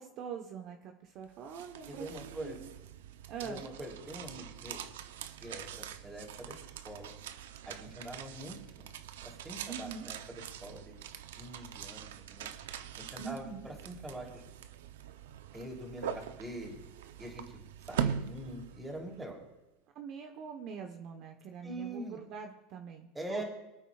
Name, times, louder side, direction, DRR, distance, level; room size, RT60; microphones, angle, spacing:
voice 1, 0.0-2.7 3.3-3.7 9.7-10.1 13.2-13.7 19.9-23.4, right 6 dB, 50° right, 4 dB, 1.0 m, -44 dB
sound 1, 1.2-19.2, right 9 dB, 85° right, 0.7 m, -42 dB
voice 2, 1.9-2.6 3.4-4.8 5.4-7.1 7.6-8.9 9.2-10.9 11.4-12.5 13.0-14.4 15.5-16.8 17.2-17.4 17.9-19.4 21.6-22.2 23.1-23.4, right 1 dB, 10° right, 0 dB, 3.3 m, -44 dB
24.0 x 9.1 x 2.4 m, 0.99 s
supercardioid pair, 110°, 0 cm